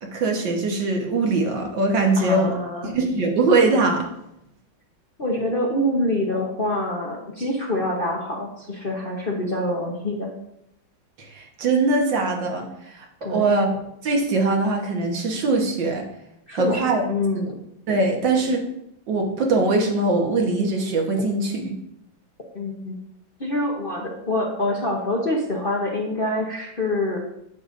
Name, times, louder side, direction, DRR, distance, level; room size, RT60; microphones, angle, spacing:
voice 1, 0.0-2.6 2.8-4.1 11.2-13.7 14.0-16.1 16.5-17.0 17.9-18.7 19.1-21.8, right 3 dB, 70° right, 2 dB, 1.9 m, -22 dB
voice 2, 2.2-2.9 5.2-10.3 13.2-13.5 16.5-17.6 18.4-18.5 22.5-23.0 23.4-27.2, left 1 dB, 40° left, -1 dB, 0.8 m, -26 dB
8.6 x 8.0 x 2.6 m, 0.79 s
omnidirectional pair, 2.1 m